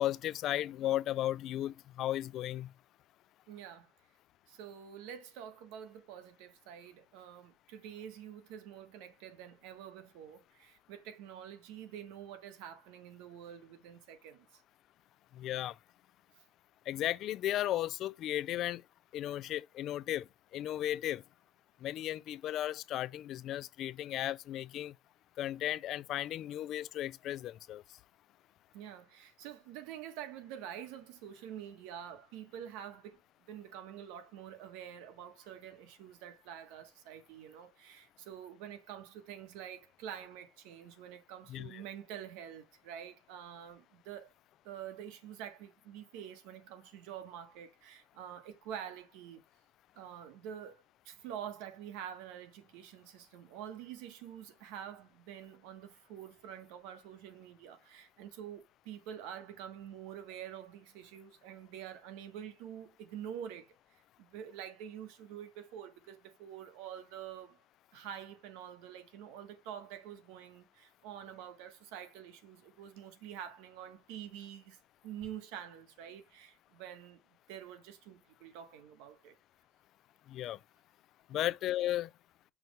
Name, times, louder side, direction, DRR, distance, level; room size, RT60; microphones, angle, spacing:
voice 1, 0.0-2.7 15.3-15.8 16.9-18.8 19.1-20.3 20.5-21.2 21.8-24.9 25.4-27.8 41.5-41.8 80.3-80.6 81.3-82.1, left 13 dB, 50° left, 0.3 m, -35 dB
voice 2, 3.5-3.9 4.5-14.6 28.7-33.2 33.5-44.3 44.6-49.4 49.9-63.8 64.2-67.6 67.9-77.2 77.5-79.4 81.3-81.5, right 9 dB, 85° right, 1.3 m, -47 dB
5.9 x 3.1 x 5.2 m
cardioid pair, 155°, 0 cm